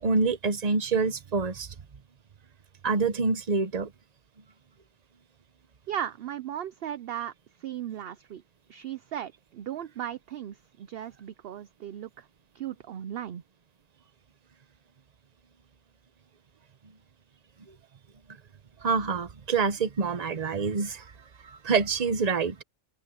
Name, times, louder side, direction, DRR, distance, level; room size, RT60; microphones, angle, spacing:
voice 1, 0.0-1.7 2.8-3.9 18.8-21.1 21.4-22.6, right 4 dB, 35° right, 0.9 m, -26 dB
voice 2, 5.9-7.3 7.6-8.4 8.7-12.3 12.5-13.4, right 10 dB, 60° right, 0.7 m, -36 dB
open air
omnidirectional pair, 1.3 m